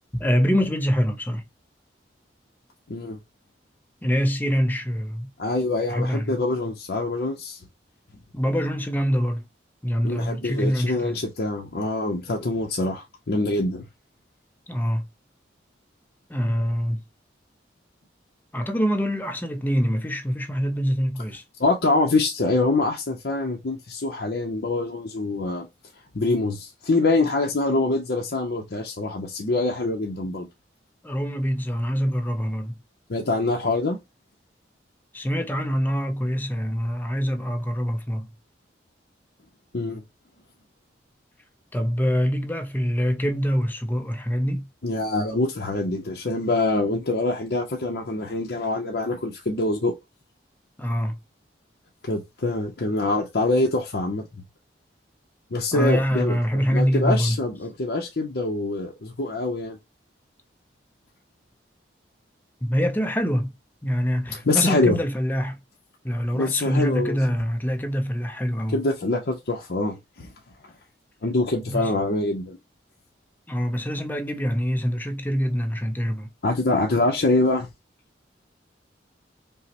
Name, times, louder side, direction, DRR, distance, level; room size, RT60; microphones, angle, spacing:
voice 1, 0.1-1.4 4.0-5.3 5.9-6.4 8.3-9.4 9.8-11.2 14.7-15.1 16.3-17.0 18.5-21.4 31.0-32.7 35.1-38.3 41.7-44.7 50.8-51.2 55.7-57.4 62.6-63.5 63.8-65.6 66.0-68.8 71.7-71.9 73.5-76.3, equal, 10° left, 0.5 m, -25 dB
voice 2, 2.9-3.2 5.4-7.6 10.0-13.9 21.6-25.7 26.1-30.5 33.1-34.0 39.7-40.0 44.8-49.9 52.0-54.4 55.5-56.4 56.7-59.8 64.5-65.0 66.3-67.2 68.7-70.3 71.2-72.6 76.4-77.7, left 2 dB, 60° left, 0.7 m, -24 dB
5.4 x 2.1 x 2.8 m
head